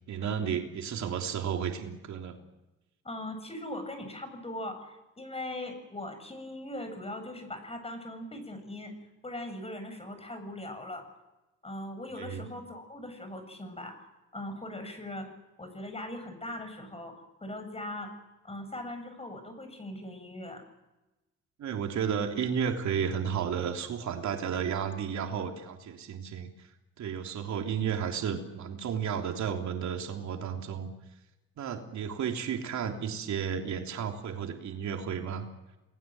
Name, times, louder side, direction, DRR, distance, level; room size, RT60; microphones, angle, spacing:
voice 1, 0.1-2.4 12.2-12.4 21.6-26.5 27.0-30.9 31.6-35.5, right 7 dB, 70° right, 3 dB, 3.3 m, -32 dB
voice 2, 3.0-8.9 9.2-11.0 11.6-14.0 14.3-15.3 15.6-17.1 17.4-18.1 18.4-20.6, left 1 dB, 20° left, 7 dB, 7.8 m, -40 dB
29.5 x 20.0 x 7.8 m, 1.0 s
cardioid pair, 90°, 30 cm